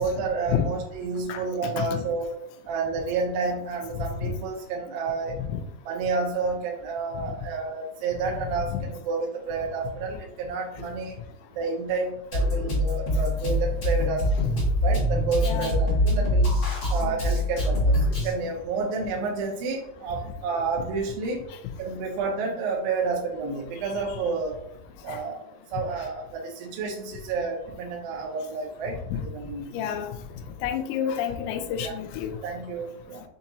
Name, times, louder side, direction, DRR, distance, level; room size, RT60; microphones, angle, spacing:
voice 1, 0.0-2.3 2.7-5.3 5.9-11.2 11.5-14.3 14.8-16.6 16.9-21.4 21.8-24.6 25.0-25.4 25.7-29.9 31.8-31.9 32.4-33.2, right 4 dB, 75° right, -2 dB, 2.3 m, -30 dB
voice 2, 1.3-2.0 3.9-4.3 5.5-5.6 8.7-8.8 15.4-15.7 25.1-25.2 29.1-29.2 29.7-30.2 30.6-32.4, left 8 dB, 85° left, 7 dB, 2.6 m, -29 dB
Drum kit, 12.3-18.3, left 1 dB, 40° left, 1.9 m, -24 dB
6.6 x 2.8 x 2.7 m, 0.76 s
omnidirectional pair, 4.7 m